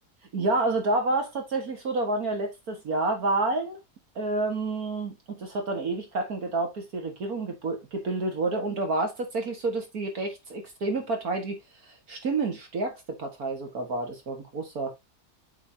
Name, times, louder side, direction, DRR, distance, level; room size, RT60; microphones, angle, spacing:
voice 1, 0.3-3.8 4.2-11.6 11.9-15.0, right 2 dB, 60° right, 2.1 m, -29 dB
8.4 x 5.6 x 2.7 m
omnidirectional pair, 1.8 m